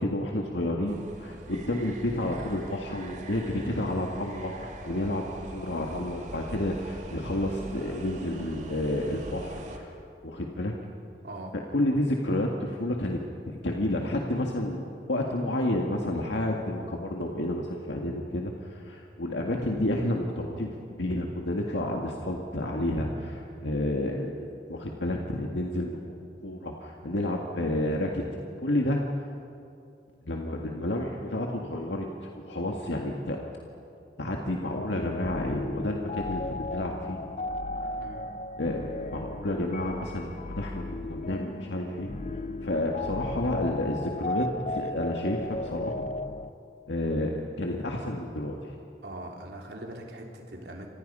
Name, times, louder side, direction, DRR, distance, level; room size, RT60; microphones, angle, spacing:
voice 1, 0.0-9.9 10.2-10.7 11.7-13.2 13.6-28.2 28.6-29.0 30.2-33.4 34.2-37.2 38.6-38.8 39.1-42.1 42.6-46.1 46.9-48.8, left 1 dB, 90° left, 0 dB, 1.9 m, -30 dB
sound 1, 0.9-9.8, right 1 dB, 40° right, 2.4 m, -43 dB
voice 2, 11.2-11.5 38.0-38.2 49.0-50.9, right 1 dB, 70° right, 0 dB, 3.7 m, -41 dB
sound 2, 34.7-46.5, left 2 dB, 40° left, 0.5 m, -35 dB
29.5 x 26.0 x 5.6 m, 2.7 s
head